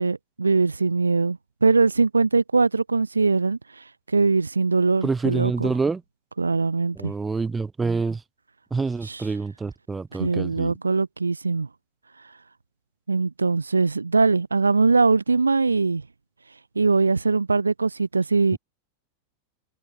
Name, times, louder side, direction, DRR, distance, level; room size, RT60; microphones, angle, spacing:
voice 1, 0.0-5.7 6.4-7.1 9.1-9.2 10.2-11.7 13.1-16.0 16.8-18.6, right 4 dB, 80° right, 1.0 m, -21 dB
voice 2, 5.0-6.0 6.9-8.2 8.7-10.7 18.5-18.6, right 4 dB, 10° right, 3.4 m, -27 dB
figure-of-eight pair, 90°, 0 cm